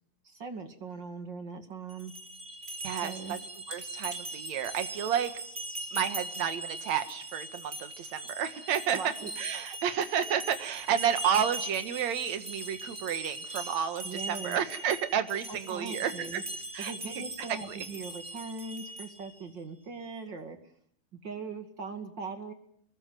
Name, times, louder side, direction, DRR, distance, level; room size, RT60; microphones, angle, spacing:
voice 1, 0.2-2.1 3.0-3.4 8.9-9.3 14.0-14.6 15.5-16.4 16.8-20.6 21.1-22.5, right 4 dB, 35° right, 6 dB, 1.9 m, -40 dB
sound 1, 1.9-19.3, right 2 dB, 20° right, 1.4 m, -40 dB
voice 2, 2.8-3.4 3.7-5.3 5.9-9.0 9.4-16.4 16.7-16.9 17.7-17.8, right 8 dB, 55° right, 9 dB, 2.0 m, -31 dB
25.0 x 21.5 x 7.6 m, 0.68 s
omnidirectional pair, 5.2 m